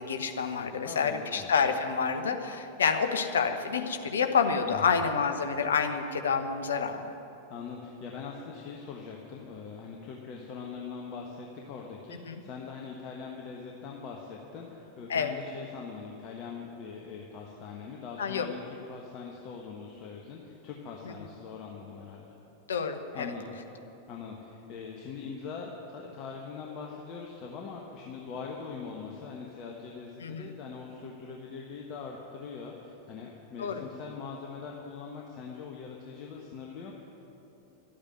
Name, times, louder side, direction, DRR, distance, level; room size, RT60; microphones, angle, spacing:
voice 1, 0.0-7.1 12.3-12.4 15.1-15.3 18.2-18.5 22.7-23.3 30.2-30.5 33.6-33.8, left 6 dB, 65° left, 7 dB, 1.0 m, -28 dB
voice 2, 0.8-1.5 4.7-5.0 7.5-22.4 23.1-23.6 24.1-36.9, left 5 dB, 35° left, -1 dB, 1.3 m, -42 dB
12.5 x 8.7 x 9.3 m, 3.0 s
figure-of-eight pair, 90°, 0 cm